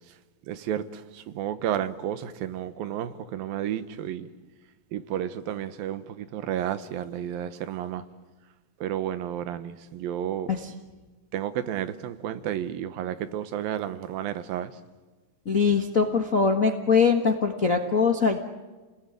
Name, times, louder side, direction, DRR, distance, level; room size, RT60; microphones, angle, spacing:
voice 1, 0.5-4.3 4.9-8.0 8.8-10.5 11.3-14.7, right 10 dB, 85° right, 2.9 m, -31 dB
voice 2, 15.4-18.4, left 5 dB, 50° left, 0.9 m, -22 dB
29.5 x 19.5 x 9.3 m
omnidirectional pair, 4.0 m